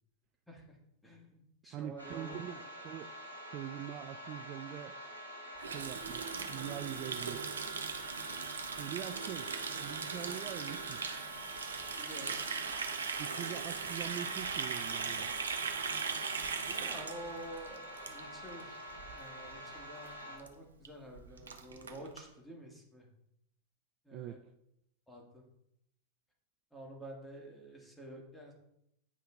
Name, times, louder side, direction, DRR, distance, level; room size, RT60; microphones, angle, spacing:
voice 1, 0.5-0.8 1.0-2.4 12.0-12.4 16.7-18.8 19.2-23.1 24.0-24.4 25.1-25.4 26.7-28.5, right 1 dB, 5° left, -1 dB, 1.9 m, -49 dB
voice 2, 1.7-3.1 3.5-5.0 5.7-7.5 8.8-9.5 9.8-11.0 13.2-15.3 24.1-24.4, right 11 dB, 35° right, 9 dB, 0.3 m, -43 dB
sound 1, 2.0-20.4, equal, 90° left, 2.0 m, -47 dB
Water tap faucet, 5.6-18.6 18.9-19.1 19.4-19.8 20.1-20.2 20.4-20.5 20.8-20.9 21.1-22.2, right 5 dB, 70° right, 0.7 m, -39 dB
9.5 x 5.6 x 2.5 m, 0.77 s
figure-of-eight pair, 90°, 0 cm